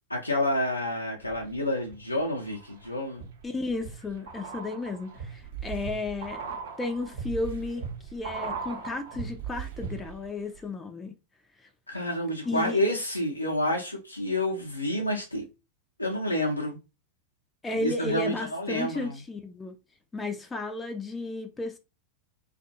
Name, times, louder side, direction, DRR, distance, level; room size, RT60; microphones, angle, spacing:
voice 1, 0.1-3.3 11.9-15.4 16.0-16.8 17.8-19.2, left 1 dB, 85° left, 0.6 m, -29 dB
sound 1, 1.2-2.0 2.4-10.3 10.5-10.6, right 6 dB, 60° right, 0.9 m, -39 dB
voice 2, 3.4-6.4 6.8-7.8 8.1-11.1 12.5-12.8 17.6-19.7 20.1-21.8, left 3 dB, 15° left, 0.4 m, -33 dB
2.5 x 2.3 x 2.6 m
figure-of-eight pair, 90°, 0 cm